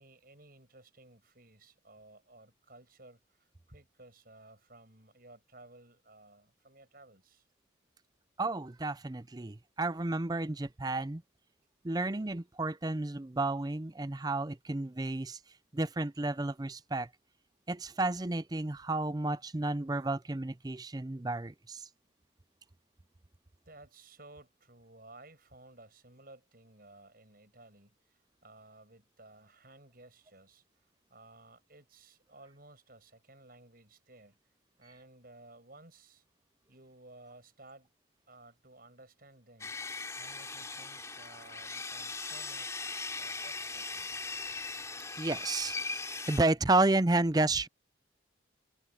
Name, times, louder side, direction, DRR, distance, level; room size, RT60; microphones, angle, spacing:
voice 1, 0.0-7.5 23.6-30.6 31.1-34.4 34.8-36.2 36.7-37.9 38.3-39.7 40.1-44.1, right 2 dB, 50° right, 7.9 m, -56 dB
voice 2, 8.4-11.2 11.8-15.4 15.7-17.1 17.7-21.9 45.2-45.8 46.3-47.7, right 2 dB, 20° right, 0.5 m, -31 dB
Sawing, 39.6-46.4, left 3 dB, 15° left, 3.2 m, -39 dB
head